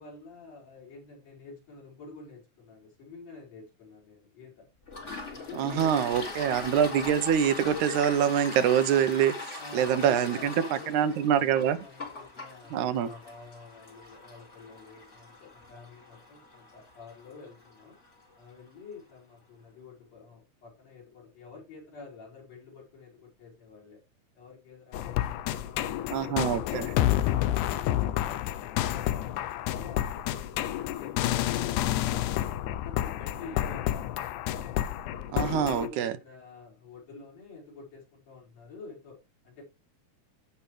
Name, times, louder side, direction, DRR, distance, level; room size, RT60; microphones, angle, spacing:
voice 1, 0.0-4.7 5.3-6.5 9.6-18.0 18.3-24.0 24.3-29.2 29.6-31.8 32.2-34.0 35.5-39.6, left 4 dB, 60° left, 6.3 m, -49 dB
Toilet flush, 4.9-18.2, left 3 dB, 25° left, 2.2 m, -41 dB
voice 2, 5.6-10.5 10.9-11.8 12.7-13.1 26.1-26.9 35.3-36.1, right 9 dB, 80° right, 2.2 m, -25 dB
sound 1, 24.9-35.9, left 13 dB, 85° left, 2.1 m, -29 dB
15.5 x 5.8 x 3.2 m
omnidirectional pair, 3.5 m